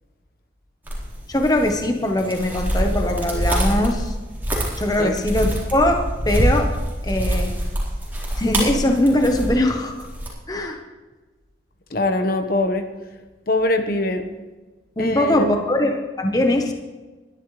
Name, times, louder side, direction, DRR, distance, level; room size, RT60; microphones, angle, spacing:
sound 1, 0.9-10.3, equal, 10° right, 4.0 m, -25 dB
voice 1, 1.3-4.1 4.8-6.7 7.0-7.5 8.4-10.1 10.5-10.8 15.0-16.7, left 1 dB, 20° left, 4 dB, 1.1 m, -21 dB
voice 2, 11.9-12.8 13.5-14.2 15.0-15.6, left 1 dB, 55° left, 6 dB, 1.2 m, -22 dB
20.5 x 12.5 x 3.3 m, 1.2 s
head